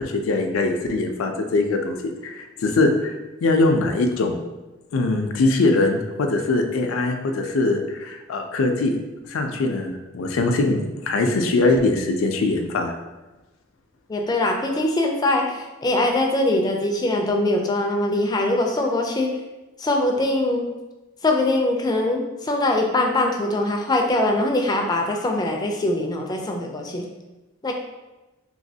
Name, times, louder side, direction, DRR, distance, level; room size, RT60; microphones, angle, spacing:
voice 1, 0.0-3.1 3.4-4.3 4.9-9.0 9.3-12.9, left 2 dB, 90° left, 4 dB, 0.4 m, -22 dB
voice 2, 14.1-19.3 19.8-20.7 21.2-27.1 27.6-27.7, left 2 dB, 20° left, 2 dB, 0.4 m, -22 dB
3.1 x 2.9 x 2.7 m, 1.1 s
head